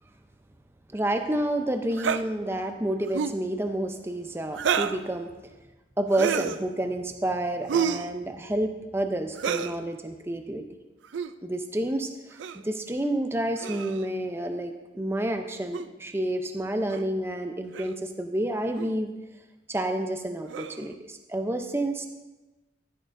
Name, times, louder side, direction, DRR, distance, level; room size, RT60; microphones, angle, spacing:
voice 1, 0.9-5.3 6.0-10.6 11.4-12.1 12.5-19.1 19.7-22.1, right 1 dB, 10° right, 5 dB, 0.6 m, -29 dB
sound 1, 2.0-2.2 3.1-3.4 4.5-5.0 6.1-6.6 7.7-8.1 9.4-9.8 11.0-11.3 12.4-12.6 13.6-14.1 15.7-15.9 16.9-17.0 17.7-18.0 18.7-18.9 20.5-20.9, right 7 dB, 75° right, 0.4 m, -29 dB
11.5 x 10.5 x 2.6 m, 1.1 s
head